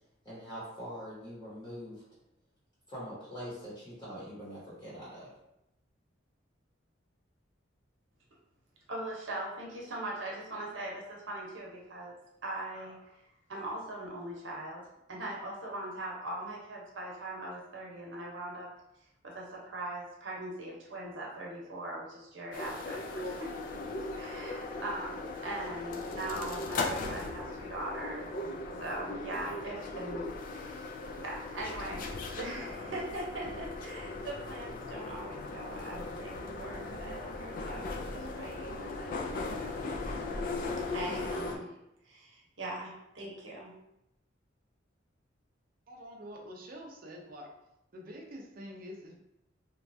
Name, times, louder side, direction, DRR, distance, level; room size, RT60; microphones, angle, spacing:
voice 1, 0.2-2.0 2.9-5.3, equal, 25° left, -9 dB, 0.9 m, -43 dB
voice 2, 8.9-12.1 12.4-13.2 13.5-14.8 15.1-18.7 19.2-23.8 24.1-28.3 28.8-30.9 31.2-32.1 32.3-39.7 40.0-40.2 40.9-41.7 42.0-43.7, right 1 dB, 85° right, -3 dB, 0.8 m, -41 dB
sound 1, 22.5-41.6, left 3 dB, 45° left, 0.3 m, -38 dB
voice 3, 45.9-47.5 47.9-49.2, equal, 50° right, 1 dB, 0.5 m, -46 dB
3.0 x 2.3 x 2.6 m, 0.85 s
head